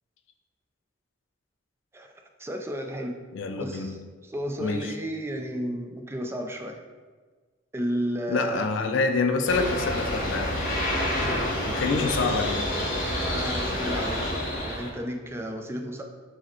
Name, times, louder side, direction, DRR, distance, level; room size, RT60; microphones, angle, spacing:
voice 1, 2.4-3.2 3.5-4.0 4.2-6.8 7.7-8.7 11.9-12.4 13.3-16.0, equal, 15° right, 3 dB, 0.3 m, -33 dB
voice 2, 3.3-4.0 4.6-4.9 8.3-10.7 11.7-12.7, left 4 dB, 70° left, 6 dB, 0.4 m, -27 dB
sound 1, 9.5-14.9, left 1 dB, 45° left, 0.9 m, -28 dB
4.9 x 2.1 x 4.3 m, 1.5 s
head